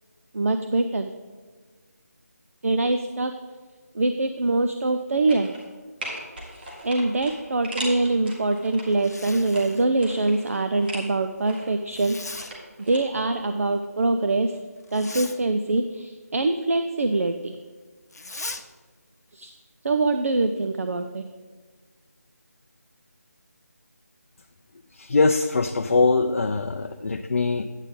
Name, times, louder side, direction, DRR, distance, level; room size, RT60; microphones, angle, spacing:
voice 1, 0.3-1.1 2.6-3.3 3.9-5.5 6.8-12.5 12.9-14.6 14.9-17.5 19.3-19.6 19.8-21.2, right 2 dB, 60° right, 8 dB, 0.5 m, -24 dB
sound 1, 5.3-5.7 6.0-8.8 9.3-11.1 11.4-13.0 13.3-13.4, right 1 dB, 35° right, 2.0 m, -38 dB
Zipper (clothing), 8.8-9.9 11.9-12.5 14.8-15.4 18.1-18.6, left 3 dB, 75° left, 0.9 m, -38 dB
voice 2, 24.9-27.7, left 3 dB, 55° left, 5 dB, 0.5 m, -22 dB
10.0 x 8.2 x 3.7 m, 1.5 s
figure-of-eight pair, 165°, 9 cm